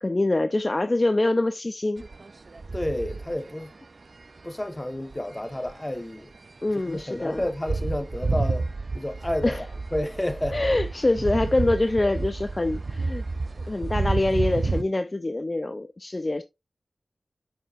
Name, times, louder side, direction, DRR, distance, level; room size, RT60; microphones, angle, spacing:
voice 1, 0.0-2.0 6.6-7.4 9.4-9.6 10.5-13.2 13.7-16.4, left 2 dB, 35° left, 0.4 m, -25 dB
sound 1, 2.0-3.6 4.2-4.4 5.1-5.7 6.0-6.1 6.3-6.4 6.6-14.8, right 3 dB, 60° right, 0.4 m, -30 dB
voice 2, 2.7-3.7 4.4-6.3 6.9-8.7 8.9-9.6 9.9-10.6, left 1 dB, 20° left, 0.9 m, -30 dB
7.2 x 5.8 x 2.4 m
wide cardioid pair, 65°, 0 cm